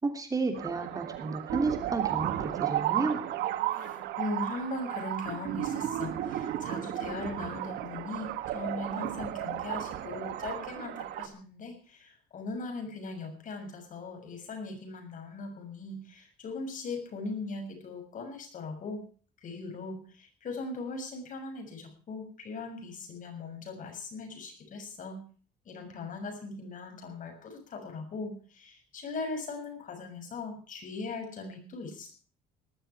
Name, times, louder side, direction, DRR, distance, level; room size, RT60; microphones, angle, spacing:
voice 1, 0.0-3.2, right 3 dB, 20° right, 5 dB, 3.0 m, -32 dB
sound 1, 0.5-11.3, right 12 dB, 80° right, 2.1 m, -34 dB
voice 2, 3.7-19.0 19.4-25.2 25.6-32.1, left 3 dB, 50° left, 5 dB, 6.9 m, -39 dB
19.5 x 12.5 x 4.7 m, 0.41 s
cardioid pair, 110°, 17 cm